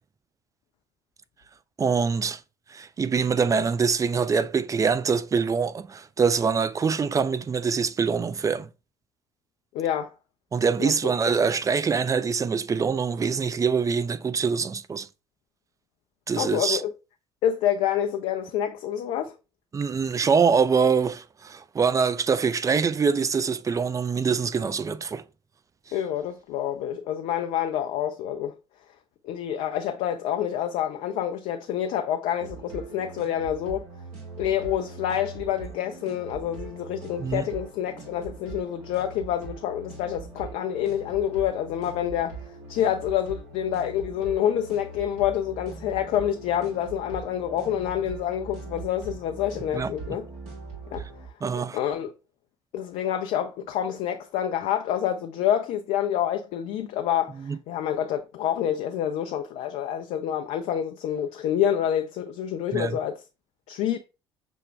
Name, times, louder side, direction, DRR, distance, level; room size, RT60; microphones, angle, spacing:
voice 1, 1.8-2.4 2.7-8.7 10.5-15.1 16.3-16.8 19.7-25.2 37.2-37.5 49.7-49.9 51.4-51.8 57.4-57.6 62.7-63.0, right 5 dB, 25° right, 0.4 m, -24 dB
voice 2, 9.7-10.1 10.8-11.1 16.4-16.9 17.4-19.3 25.9-28.5 29.2-33.9 34.4-42.4 42.7-50.3 50.9-51.0 51.7-52.1 52.7-63.2 63.7-64.0, left 10 dB, 60° left, 0.4 m, -27 dB
sound 1, 32.4-51.3, right 4 dB, 65° right, 1.6 m, -41 dB
6.0 x 2.2 x 3.2 m
hypercardioid pair, 55°, 13 cm